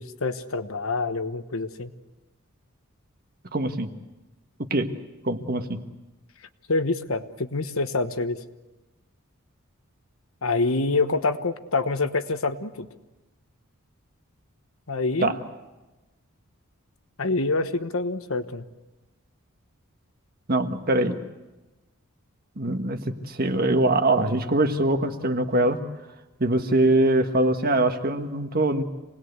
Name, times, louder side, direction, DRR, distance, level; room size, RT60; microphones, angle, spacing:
voice 1, 0.0-1.9 6.7-8.4 10.4-12.9 14.9-15.4 17.2-18.6, left 3 dB, 70° left, 10 dB, 1.2 m, -26 dB
voice 2, 3.5-3.9 4.7-4.9 5.2-5.8 15.2-15.4 20.5-21.2 22.6-25.8 26.4-28.8, right 2 dB, 45° right, 7 dB, 1.5 m, -23 dB
27.0 x 19.5 x 8.1 m, 1.1 s
head